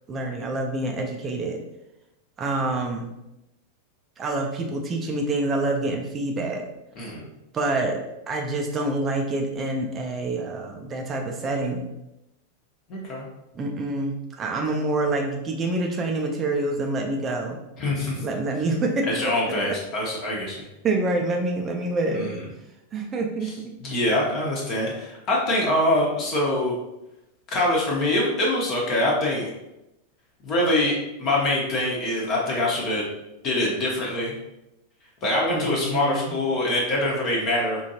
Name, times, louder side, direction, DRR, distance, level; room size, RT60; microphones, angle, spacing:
voice 1, 0.1-1.6 2.4-3.1 4.2-6.6 7.5-8.0 8.3-11.9 13.5-17.6 18.2-19.3 20.8-22.3 22.9-23.7 35.5-36.4, right 2 dB, 25° right, 1 dB, 0.6 m, -27 dB
voice 2, 12.9-13.2 17.8-18.2 19.1-20.7 22.1-22.4 23.4-23.5 23.8-26.8 27.5-29.5 30.4-33.0 33.4-34.3 35.2-37.8, left 1 dB, 35° left, -3 dB, 1.1 m, -24 dB
5.0 x 2.7 x 2.8 m, 0.91 s
figure-of-eight pair, 90°, 0 cm